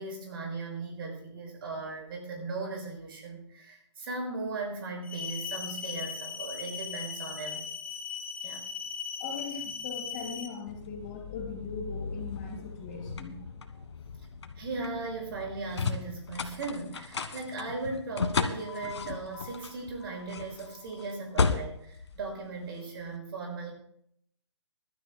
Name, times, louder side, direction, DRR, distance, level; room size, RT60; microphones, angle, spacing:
voice 1, 0.0-7.7 8.4-8.6 14.6-23.7, right 3 dB, 55° right, 1 dB, 6.3 m, -37 dB
sound 1, 5.0-10.5, left 7 dB, 10° left, 0.9 m, -38 dB
voice 2, 9.2-13.4 13.7-13.8, left 5 dB, 35° left, -1 dB, 4.9 m, -40 dB
sound 2, 10.7-23.0, left 5 dB, 70° left, 1.5 m, -35 dB
25.0 x 12.5 x 2.2 m, 0.69 s
hypercardioid pair, 145°, 15 cm